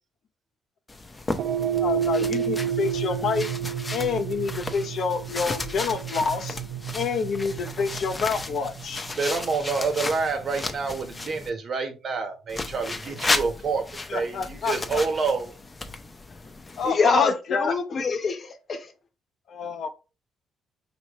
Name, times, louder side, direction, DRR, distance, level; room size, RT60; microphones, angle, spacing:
sound 1, 0.9-11.5 12.5-16.9, left 2 dB, 25° left, 0.7 m, -34 dB
sound 2, 1.4-9.8, right 9 dB, 70° right, 0.4 m, -31 dB
voice 1, 1.8-3.5 3.9-6.6 6.9-9.1 14.1-15.0 16.8-17.7 19.5-19.9, left 5 dB, 65° left, 0.7 m, -28 dB
voice 2, 9.2-15.5, right 4 dB, 55° right, 1.2 m, -28 dB
voice 3, 16.8-18.9, left 4 dB, 50° left, 1.0 m, -24 dB
5.1 x 3.0 x 3.1 m
supercardioid pair, 65°, 0 cm